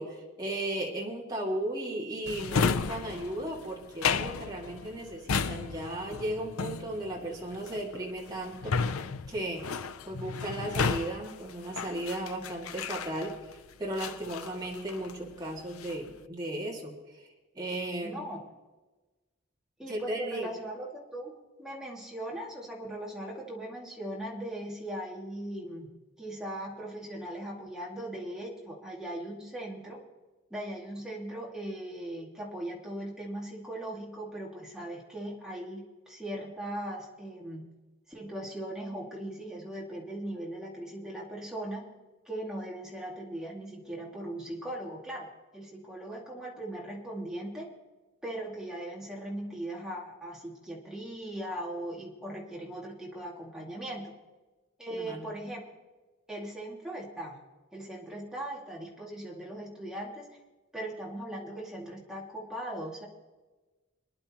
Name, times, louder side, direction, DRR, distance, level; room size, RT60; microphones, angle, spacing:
voice 1, 0.0-9.0 9.3-9.7 10.1-13.3 13.8-17.3 17.5-18.2 19.9-20.5 54.9-55.3, right 1 dB, 20° right, -4 dB, 2.2 m, -35 dB
Drawer open or close, 2.3-13.5 14.0-15.2 15.6-16.1, left 5 dB, 85° left, 0.5 m, -33 dB
voice 2, 18.0-18.4 19.8-25.9 26.2-30.0 30.5-37.7 38.1-41.8 42.3-45.3 45.5-47.7 48.2-54.1 54.8-55.6 56.3-57.4 57.7-60.4 60.7-63.1, right 1 dB, 5° right, -4 dB, 2.2 m, -39 dB
23.5 x 10.5 x 3.0 m, 1.2 s
head